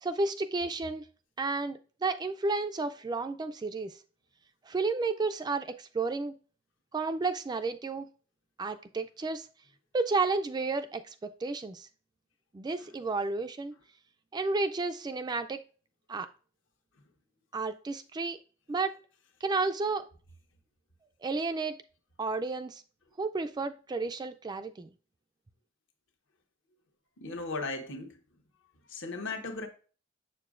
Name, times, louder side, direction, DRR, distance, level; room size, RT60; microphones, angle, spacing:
voice 1, 0.0-1.0 1.4-4.0 4.7-6.4 6.9-8.1 8.6-9.5 9.9-11.9 12.5-13.7 14.3-15.6 16.1-16.3 17.5-18.4 18.7-18.9 19.4-20.1 21.2-21.8 22.2-22.8 23.2-24.9, right 3 dB, 20° right, 0.3 m, -32 dB
voice 2, 27.2-28.2 28.9-29.7, left 3 dB, 65° left, 1.1 m, -36 dB
7.1 x 6.7 x 2.5 m
head